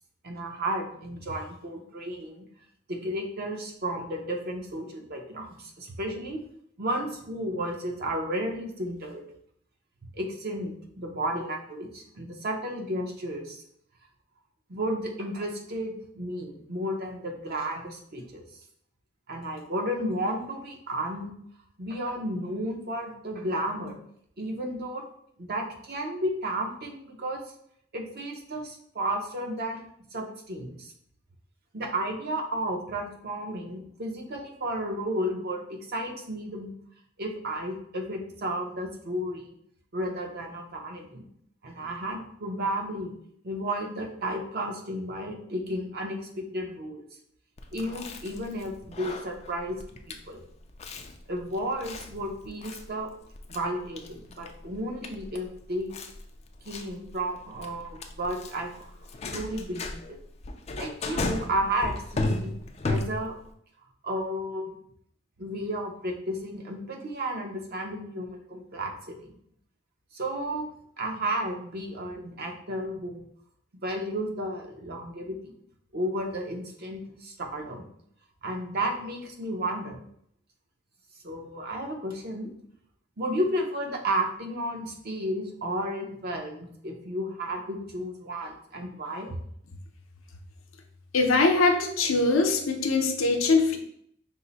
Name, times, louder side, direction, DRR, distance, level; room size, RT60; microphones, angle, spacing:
voice 1, 0.2-2.4 2.9-6.4 6.8-9.3 10.1-13.6 14.7-18.4 19.3-21.3 21.8-24.0 24.4-25.0 25.4-27.4 27.9-29.8 30.1-30.9 31.7-36.7 37.2-39.5 39.9-41.3 41.6-43.1 43.4-47.0 47.7-49.8 50.1-50.4 51.3-53.1 53.5-55.9 56.7-58.9 59.3-60.2 60.8-62.5 62.8-63.3 64.0-64.7 65.4-69.4 70.1-70.7 71.0-73.2 73.8-75.5 75.9-77.8 78.4-80.0 81.2-82.5 83.2-89.4, right 1 dB, 50° right, 1 dB, 0.7 m, -33 dB
Chewing mastication, 47.6-63.5, left 2 dB, 30° left, 0.4 m, -36 dB
voice 2, 91.1-93.8, left 3 dB, 80° left, 4 dB, 0.7 m, -22 dB
5.4 x 2.1 x 3.9 m, 0.68 s
head